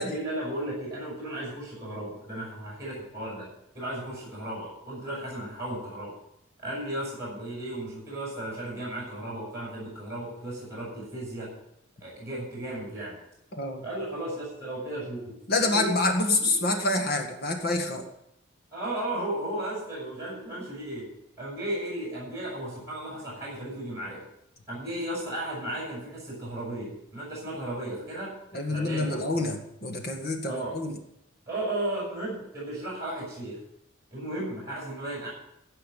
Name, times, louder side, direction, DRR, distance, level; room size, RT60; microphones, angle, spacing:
voice 1, 0.0-3.5 3.7-6.1 6.6-11.5 12.0-13.1 13.8-16.0 18.7-21.1 21.4-24.2 24.7-28.3 28.7-29.5 30.4-30.8 31.5-33.6 34.1-35.3, right 1 dB, 15° right, -5 dB, 7.4 m, -35 dB
voice 2, 15.5-18.1 28.5-31.0, left 2 dB, 50° left, 4 dB, 1.8 m, -27 dB
15.5 x 5.7 x 9.8 m, 0.79 s
head